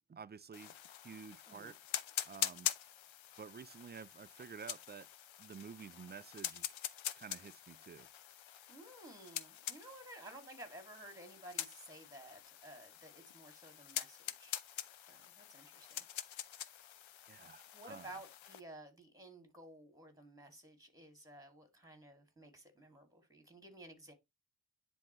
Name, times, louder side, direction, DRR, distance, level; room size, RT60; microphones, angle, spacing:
voice 1, 0.1-0.8 1.0-1.8 2.3-2.7 3.4-5.1 5.4-6.7 7.2-8.1 17.3-18.1, right 6 dB, 25° right, 0.3 m, -51 dB
sound 1, 0.5-18.6, left 11 dB, 80° left, 0.7 m, -45 dB
voice 2, 8.7-14.6 15.1-16.0 17.7-24.1, right 1 dB, 5° right, 2.3 m, -54 dB
10.5 x 3.7 x 3.0 m
wide cardioid pair, 100°, 46 cm